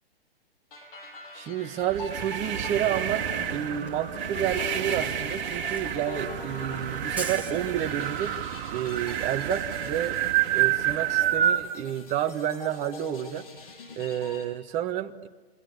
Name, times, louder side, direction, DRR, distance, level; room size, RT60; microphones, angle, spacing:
sound 1, 0.7-14.4, left 3 dB, 60° left, 6.7 m, -42 dB
voice 1, 1.3-8.4 8.7-10.2 10.5-13.4 14.0-15.3, right 10 dB, 25° right, 6 dB, 1.4 m, -30 dB
sound 2, 1.8-11.6, right 11 dB, 45° right, 2.9 m, -29 dB
Camera, 3.9-8.2, right 3 dB, 5° right, 2.3 m, -41 dB
27.5 x 27.0 x 8.1 m, 1.3 s
hypercardioid pair, 140°, 31 cm